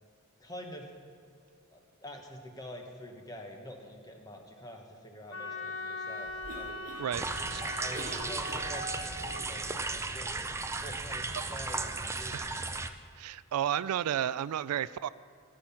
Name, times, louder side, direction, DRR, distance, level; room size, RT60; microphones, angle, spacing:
voice 1, 0.4-0.9 1.7-6.9 7.5-10.3 10.8-12.6, equal, 15° left, 2 dB, 1.3 m, -46 dB
Wind instrument woodwind instrument, 5.3-9.5, left 2 dB, 65° left, 1.2 m, -40 dB
Cough, 6.2-9.1, right 2 dB, 40° right, 1.5 m, -46 dB
voice 2, 7.0-7.6 12.3-12.5 13.2-15.1, right 10 dB, 85° right, 17 dB, 0.3 m, -32 dB
sound 1, 7.1-12.9, right 3 dB, 10° right, 0.4 m, -35 dB
16.0 x 7.8 x 5.7 m, 2.6 s
head